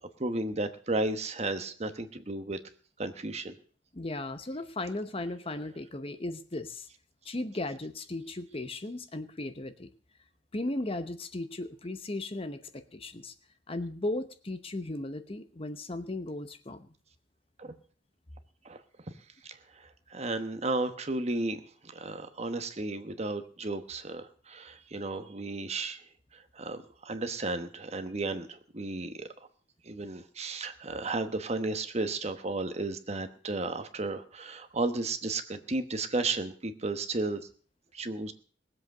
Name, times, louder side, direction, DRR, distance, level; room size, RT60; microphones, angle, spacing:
voice 1, 0.2-2.6 3.0-3.6 17.6-17.7 18.6-18.8 19.4-19.6 20.1-26.0 26.5-29.3 29.8-37.5 37.9-38.3, right 2 dB, 35° right, 9 dB, 1.1 m, -33 dB
voice 2, 3.9-6.9 7.2-9.9 10.5-13.3 13.7-16.9, left 2 dB, 30° left, 10 dB, 0.9 m, -36 dB
19.5 x 7.9 x 6.5 m, 0.43 s
head